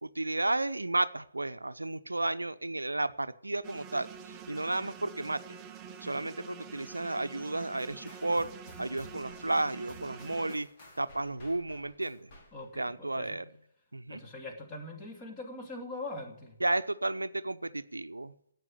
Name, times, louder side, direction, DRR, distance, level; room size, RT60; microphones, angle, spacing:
voice 1, 0.0-5.4 6.0-8.5 8.8-10.7 11.0-12.3 12.8-13.5 13.9-14.2 16.6-18.3, right 2 dB, 80° right, 12 dB, 0.7 m, -32 dB
sound 1, 3.6-10.6, right 7 dB, 15° right, 0.7 m, -47 dB
sound 2, 7.8-12.9, left 1 dB, 35° left, 4.0 m, -55 dB
voice 2, 12.5-13.4 14.1-16.6, left 2 dB, 15° left, 2 dB, 2.6 m, -42 dB
12.0 x 9.0 x 9.6 m, 0.77 s
figure-of-eight pair, 140°, 0 cm